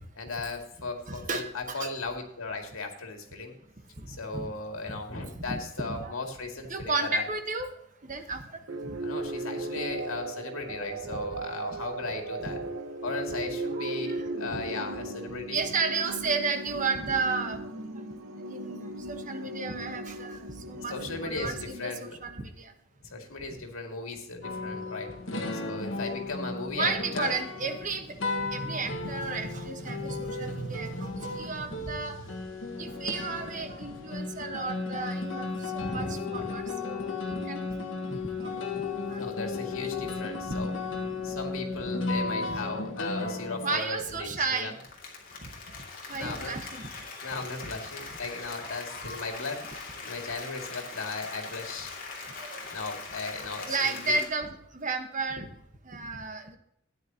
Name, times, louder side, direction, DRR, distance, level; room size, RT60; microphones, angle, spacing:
voice 1, 0.1-3.5 4.1-7.3 9.0-12.6 13.0-15.7 20.7-22.2 23.0-25.1 25.5-27.4 35.8-36.7 39.1-40.8 41.2-44.8 46.2-46.7 47.2-49.6 50.0-51.9 52.7-54.2, left 3 dB, 90° left, 3 dB, 2.2 m, -37 dB
voice 2, 1.1-1.9 4.0-4.5 4.9-5.0 5.3-6.2 6.7-7.7 8.0-8.4 8.8-9.0 11.1-11.2 12.5-12.6 13.8-14.6 15.5-18.2 18.5-21.0 21.2-22.7 26.7-32.2 32.8-37.7 38.1-38.7 39.1-39.2 40.5-40.6 43.6-44.7 46.1-46.9 52.4-52.6 53.7-54.5 54.7-55.5 55.8-56.6, right 4 dB, 40° right, 6 dB, 1.3 m, -33 dB
sound 1, 8.7-22.4, right 2 dB, 85° right, 1.0 m, -37 dB
sound 2, 24.4-43.8, left 3 dB, 70° left, 1.7 m, -35 dB
Applause, 44.6-54.3, left 4 dB, 45° left, 2.5 m, -41 dB
13.0 x 9.7 x 2.9 m, 0.72 s
head